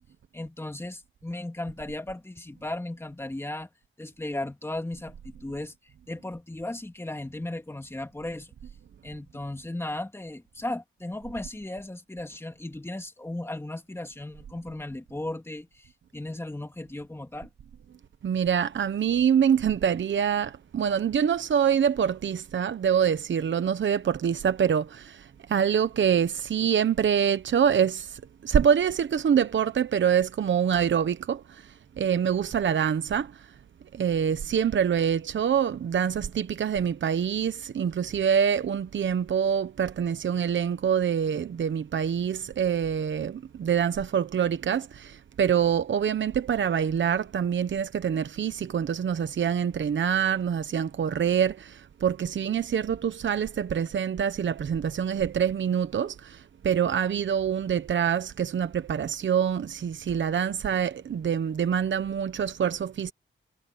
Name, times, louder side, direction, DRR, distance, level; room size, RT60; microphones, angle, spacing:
voice 1, 0.3-3.7 4.0-5.7 6.1-8.5 9.0-17.5, left 1 dB, 10° left, 2.4 m, -36 dB
voice 2, 18.2-33.5 33.9-63.1, right 8 dB, 65° right, 1.0 m, -25 dB
wide cardioid pair, 110°, 21 cm